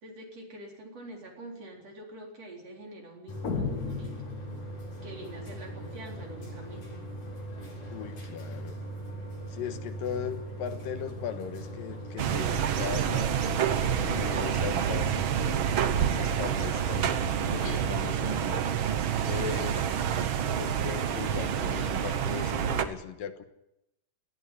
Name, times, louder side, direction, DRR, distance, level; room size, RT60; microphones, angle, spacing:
voice 1, 0.0-4.2 5.0-7.0, right 1 dB, 45° right, 1 dB, 5.0 m, -45 dB
sound 1, 3.3-17.7, right 1 dB, 70° left, 8.1 m, -40 dB
sound 2, 3.4-5.0, left 5 dB, 45° left, 1.3 m, -34 dB
voice 2, 7.9-8.8 9.5-13.4 14.0-15.4 16.0-17.1 17.5-18.6 19.2-19.9 20.5-23.5, left 8 dB, 85° left, 9 dB, 3.0 m, -38 dB
sound 3, 12.2-22.9, right 8 dB, 75° right, 1.1 m, -28 dB
19.5 x 14.0 x 9.9 m, 0.88 s
omnidirectional pair, 3.9 m